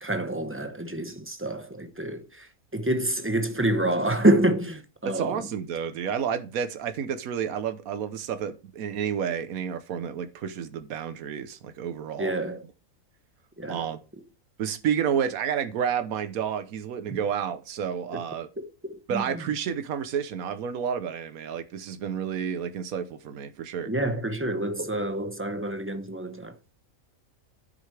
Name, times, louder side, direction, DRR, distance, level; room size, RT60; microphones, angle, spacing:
voice 1, 0.0-5.5 12.2-12.6 13.6-13.9 17.1-17.2 18.1-18.2 18.6-19.4 23.8-26.6, right 1 dB, 10° right, 0.8 m, -27 dB
voice 2, 5.0-12.3 13.7-14.0 14.6-18.5 19.1-23.9, right 8 dB, 80° right, 1.3 m, -30 dB
10.0 x 7.9 x 3.3 m
omnidirectional pair, 1.5 m